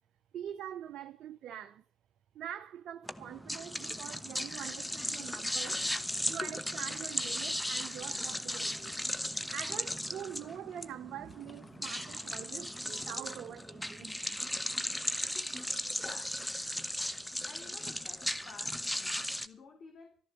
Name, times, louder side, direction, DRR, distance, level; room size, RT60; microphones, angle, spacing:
voice 1, 0.3-1.8 2.3-5.9 6.3-9.0 9.5-14.1, right 10 dB, 70° right, 0.7 m, -44 dB
sound 1, 3.1-19.5, equal, 5° left, 1.1 m, -36 dB
sound 2, 6.4-7.1 8.1-8.6 9.3-9.9 10.4-12.1 12.8-13.4 14.1-14.8 15.1-15.5, left 4 dB, 30° left, 1.0 m, -54 dB
voice 2, 16.0-16.4 17.4-20.2, left 4 dB, 60° left, 3.7 m, -53 dB
14.0 x 11.0 x 7.1 m
hypercardioid pair, 50°, 0 cm